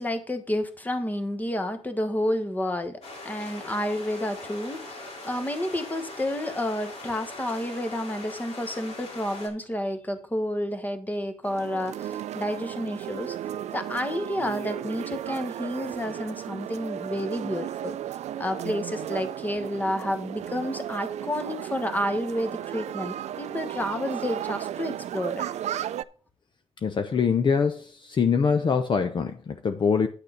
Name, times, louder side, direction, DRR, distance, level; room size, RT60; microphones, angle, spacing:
voice 1, 0.0-13.4 13.7-18.0 18.4-25.5, left 1 dB, 15° left, 1.3 m, -30 dB
sound 1, 3.0-9.5, left 2 dB, 70° left, 3.7 m, -41 dB
sound 2, 11.4-26.0, right 11 dB, 85° right, 0.4 m, -34 dB
voice 2, 26.8-30.1, left 6 dB, 45° left, 0.7 m, -24 dB
9.8 x 6.6 x 5.1 m
cardioid pair, 115°, 11 cm